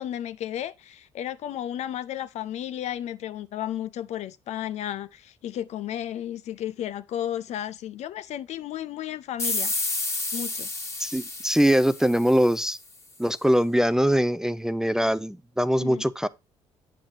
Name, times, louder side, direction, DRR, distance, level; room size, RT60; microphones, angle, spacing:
voice 1, 0.0-9.7 10.3-10.7 15.8-16.0, left 11 dB, 50° left, 0.6 m, -33 dB
sound 1, 9.4-12.7, left 2 dB, 20° left, 1.8 m, -31 dB
voice 2, 11.0-12.8 13.2-16.3, equal, 5° right, 0.6 m, -22 dB
8.7 x 8.4 x 2.7 m
figure-of-eight pair, 50°, 15 cm